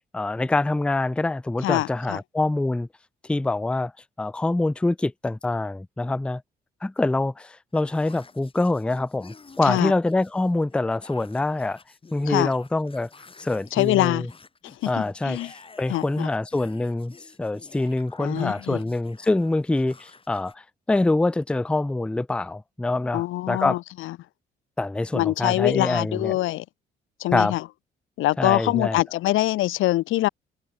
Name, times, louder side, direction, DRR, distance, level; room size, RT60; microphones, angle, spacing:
voice 1, 0.1-2.9 3.3-3.9 4.2-6.4 6.8-11.8 12.1-13.1 13.4-14.3 14.9-17.1 17.4-23.8 24.8-26.4 27.3-27.6 28.4-29.0, left 2 dB, 5° left, 0.4 m, -25 dB
voice 2, 1.6-2.2 9.6-9.9 12.3-12.5 13.7-14.3 14.6-15.5 15.9-16.3 18.2-18.8 23.1-24.2 25.1-26.6 27.2-27.6 28.2-30.3, left 16 dB, 85° left, 0.8 m, -24 dB
sound 1, 7.7-20.5, left 4 dB, 25° left, 2.7 m, -50 dB
cardioid pair, 90°, 20 cm